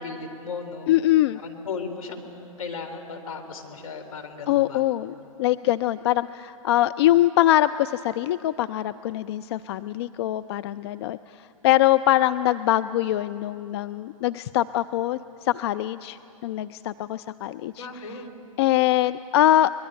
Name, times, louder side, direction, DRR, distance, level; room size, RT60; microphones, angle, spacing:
voice 1, 0.0-0.9 1.4-4.8 17.7-18.3, left 4 dB, 75° left, 4 dB, 3.5 m, -36 dB
voice 2, 0.9-1.4 4.5-18.2 18.6-19.7, left 14 dB, 50° left, 13 dB, 0.5 m, -23 dB
24.0 x 21.0 x 9.0 m, 2.9 s
figure-of-eight pair, 110°, 18 cm